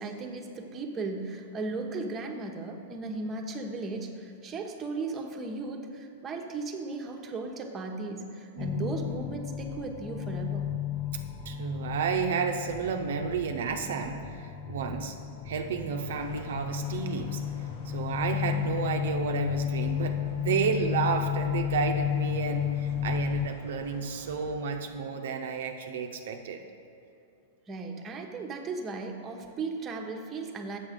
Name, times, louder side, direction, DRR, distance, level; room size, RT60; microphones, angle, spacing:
voice 1, 0.0-10.8 27.7-30.8, right 3 dB, 25° right, 2 dB, 0.9 m, -36 dB
voice 2, 8.5-9.0 11.4-15.2 15.4-17.4 17.8-26.6, right 6 dB, 75° right, 4 dB, 0.6 m, -31 dB
sound 1, 8.6-23.5, left 10 dB, 30° left, 0.6 m, -33 dB
sound 2, 15.9-24.5, left 1 dB, 70° left, 1.6 m, -51 dB
7.2 x 7.0 x 5.1 m, 2.7 s
hypercardioid pair, 115°, 0 cm